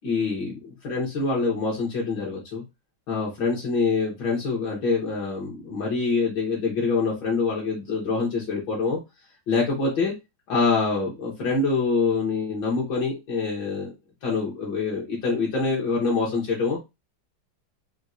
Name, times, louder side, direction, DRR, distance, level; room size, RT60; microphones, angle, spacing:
voice 1, 0.0-2.6 3.1-9.0 9.5-10.1 10.5-13.9 14.2-16.8, left 4 dB, 70° left, -5 dB, 1.7 m, -25 dB
4.3 x 2.2 x 2.5 m, 0.23 s
omnidirectional pair, 2.2 m